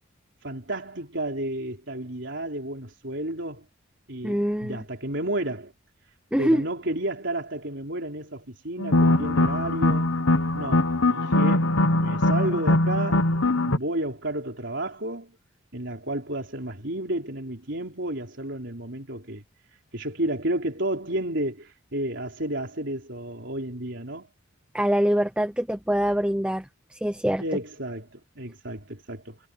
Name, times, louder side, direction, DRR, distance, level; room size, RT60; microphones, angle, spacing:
voice 1, 0.4-3.7 4.1-5.7 6.4-10.1 10.5-13.3 13.6-15.3 15.7-19.4 19.9-24.3 27.4-29.4, right 1 dB, 60° right, 4.2 m, -31 dB
voice 2, 4.2-4.8 6.3-6.6 24.7-27.4, equal, 5° right, 0.8 m, -24 dB
sound 1, 8.8-13.8, left 2 dB, 80° left, 1.4 m, -22 dB
head